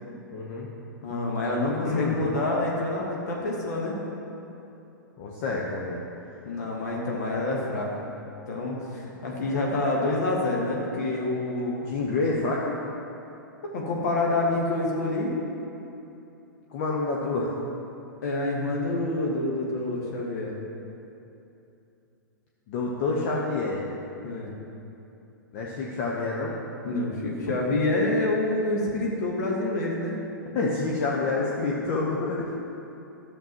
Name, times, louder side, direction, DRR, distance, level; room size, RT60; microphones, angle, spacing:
voice 1, 0.3-0.7 1.8-2.3 5.2-6.0 11.8-12.8 16.7-17.7 22.7-23.8 25.5-26.6 30.5-32.5, left 3 dB, 40° left, -3 dB, 0.9 m, -28 dB
voice 2, 1.0-4.0 6.4-8.1 8.5-11.8 13.7-15.3 18.2-20.5 24.2-24.5 26.8-30.2, left 2 dB, 55° left, -2 dB, 1.5 m, -27 dB
12.5 x 7.0 x 3.0 m, 2.8 s
figure-of-eight pair, 105°, 11 cm